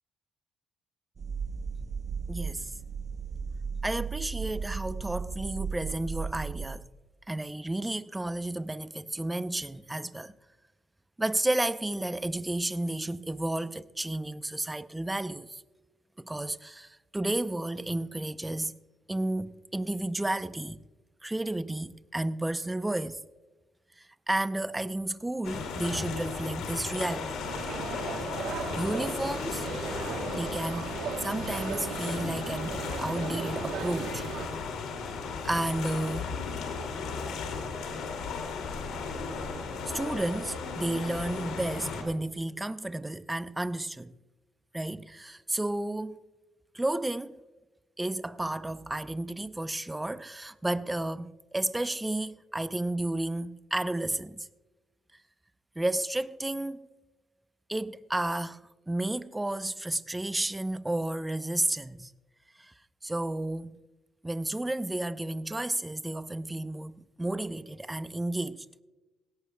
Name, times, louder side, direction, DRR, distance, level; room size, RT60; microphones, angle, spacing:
sound 1, 1.2-6.7, right 5 dB, 45° right, 0.8 m, -35 dB
voice 1, 2.3-2.7 3.8-6.8 7.3-10.3 11.2-15.6 16.2-18.8 19.1-20.8 21.2-23.2 24.0-27.4 28.7-29.7 30.3-30.9 31.2-34.2 35.4-36.4 39.9-44.1 44.7-46.2 46.7-47.3 48.0-54.5 55.8-56.8 57.7-62.1 62.6-62.7 63.0-63.8 64.2-68.7, right 1 dB, 10° right, 0.5 m, -32 dB
sound 2, 25.4-42.0, left 4 dB, 85° left, 2.4 m, -35 dB
sound 3, 27.4-34.5, right 7 dB, 85° right, 1.1 m, -37 dB
17.5 x 17.0 x 2.2 m
cardioid pair, 90°, 0 cm